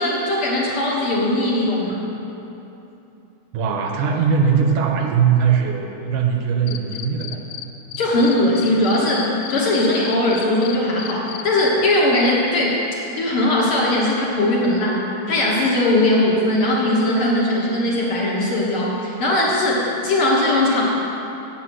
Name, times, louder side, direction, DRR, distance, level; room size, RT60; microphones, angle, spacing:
voice 1, 0.0-2.0 8.0-12.8 13.1-20.8, left 1 dB, 55° left, -4 dB, 1.6 m, -19 dB
voice 2, 3.5-7.5, right 6 dB, 75° right, 2 dB, 2.2 m, -20 dB
Cricket, 6.7-7.6 7.9-12.3, left 14 dB, 85° left, 1.7 m, -33 dB
8.7 x 8.6 x 6.3 m, 2.9 s
omnidirectional pair, 3.9 m